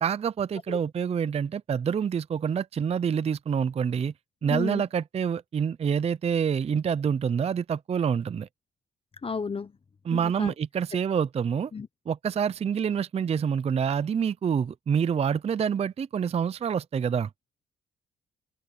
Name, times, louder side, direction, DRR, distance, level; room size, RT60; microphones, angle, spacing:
voice 1, 0.0-4.1 4.4-8.5 10.0-11.7 12.1-17.3, right 7 dB, 30° right, 0.4 m, -27 dB
voice 2, 4.5-4.8 9.2-9.7 10.1-10.5 11.7-11.9, left 5 dB, 30° left, 0.9 m, -32 dB
open air
cardioid pair, 90°, 20 cm